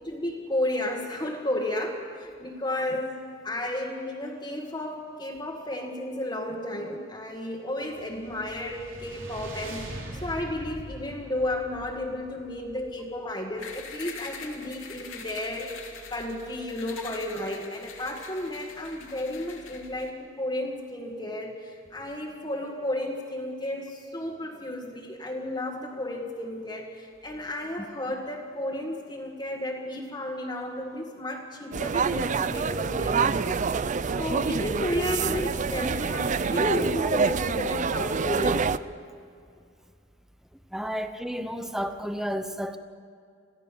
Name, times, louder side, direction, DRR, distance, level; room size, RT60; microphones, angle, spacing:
voice 1, 0.0-33.9 34.2-38.6, left 1 dB, 25° left, -3 dB, 1.8 m, -33 dB
sound 1, 7.9-13.3, right 1 dB, 70° right, 4.1 m, -42 dB
sound 2, 13.6-20.1, left 5 dB, 90° left, 2.6 m, -44 dB
sound 3, 31.7-38.8, right 5 dB, 40° right, 0.5 m, -27 dB
voice 2, 40.7-42.8, equal, ahead, 8 dB, 0.8 m, -32 dB
27.0 x 16.0 x 7.0 m, 2.3 s
head